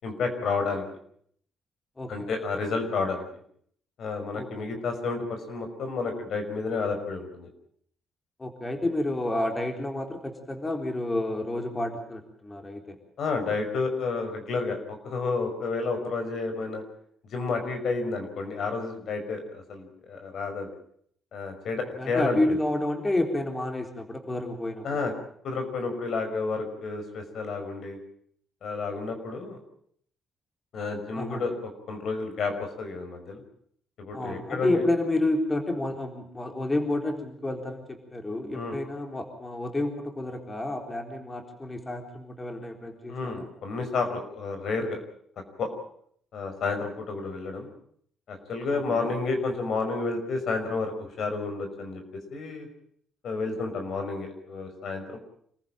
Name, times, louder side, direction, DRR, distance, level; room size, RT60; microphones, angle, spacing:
voice 1, 0.0-0.8 2.1-3.2 4.0-7.5 13.2-16.8 17.3-20.7 21.3-22.6 24.8-25.1 25.4-28.0 28.6-29.6 30.7-33.4 34.0-34.8 38.5-38.8 43.1-45.0 45.6-45.7 46.3-47.7 48.3-52.0 52.3-52.7 53.2-55.2, left 4 dB, 65° left, 6 dB, 5.7 m, -30 dB
voice 2, 2.0-2.3 4.3-4.7 8.4-13.0 22.0-25.1 31.2-31.4 34.1-43.5 48.7-49.1, left 1 dB, 20° left, 4 dB, 3.9 m, -30 dB
26.5 x 15.0 x 9.0 m, 0.65 s
cardioid pair, 90°, 0 cm